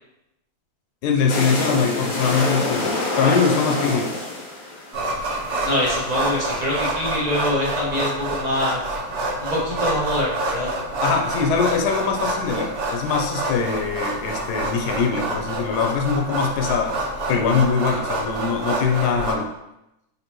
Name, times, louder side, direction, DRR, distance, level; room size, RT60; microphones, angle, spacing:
voice 1, 1.0-4.1 11.0-17.0 17.3-19.5, left 5 dB, 80° left, 3 dB, 1.1 m, -22 dB
sound 1, 1.3-6.8, left 2 dB, 35° left, 0.7 m, -27 dB
sound 2, 4.9-19.3, right 1 dB, 65° right, 1.2 m, -27 dB
voice 2, 5.6-8.8 9.4-10.7, left 1 dB, 35° right, -5 dB, 0.8 m, -24 dB
4.0 x 3.7 x 2.9 m, 0.87 s
omnidirectional pair, 1.7 m